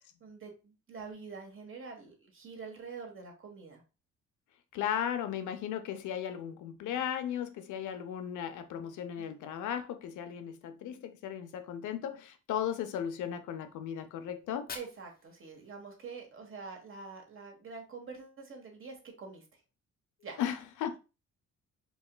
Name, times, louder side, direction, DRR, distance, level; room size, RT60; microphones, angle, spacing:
voice 1, 0.2-3.8 9.2-9.3 14.7-19.4 20.2-20.4, right 4 dB, 45° right, 1.3 m, -46 dB
voice 2, 4.7-14.7 20.4-21.0, left 9 dB, 80° left, 0.6 m, -36 dB
Fire, 14.4-16.4, left 5 dB, 30° left, 0.6 m, -49 dB
4.6 x 2.9 x 2.2 m
cardioid pair, 90°, 30 cm